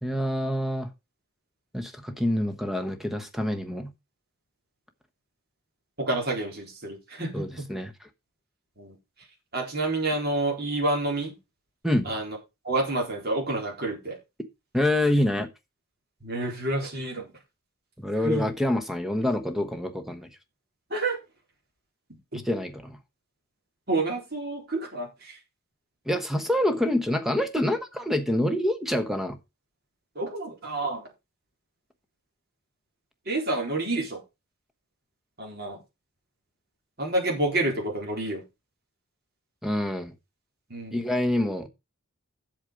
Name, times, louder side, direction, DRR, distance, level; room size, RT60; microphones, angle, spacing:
voice 1, 0.0-0.9 1.7-3.9 7.3-7.9 11.8-12.1 14.7-15.5 18.0-20.3 22.4-23.0 26.1-29.4 39.6-40.1 40.9-41.7, left 1 dB, ahead, 1.0 m, -26 dB
voice 2, 6.0-7.5 8.8-8.9 9.5-11.3 12.1-12.4 12.6-14.2 16.2-17.3 18.2-18.5 20.9-21.2 22.3-22.4 23.9-25.4 30.2-31.0 33.3-34.2 35.4-35.8 37.0-38.4 40.7-41.0, right 2 dB, 45° right, 4.1 m, -28 dB
8.1 x 7.3 x 5.1 m
head